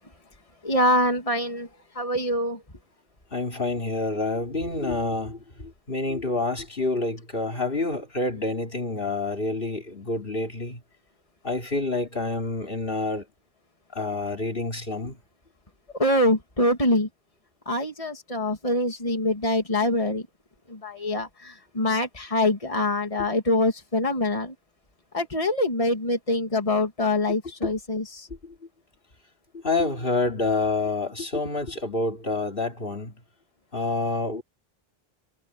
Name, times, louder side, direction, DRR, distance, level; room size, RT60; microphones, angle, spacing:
voice 1, 0.6-1.7 2.0-2.6 16.0-17.1 17.7-20.2 20.7-24.5 25.1-28.3, left 1 dB, 35° left, 2.8 m, -24 dB
voice 2, 3.3-10.8 11.4-13.2 13.9-15.2 27.6-27.7 28.4-28.5 29.5-33.1 33.7-34.4, left 3 dB, 65° left, 3.3 m, -28 dB
omnidirectional pair, 1.0 m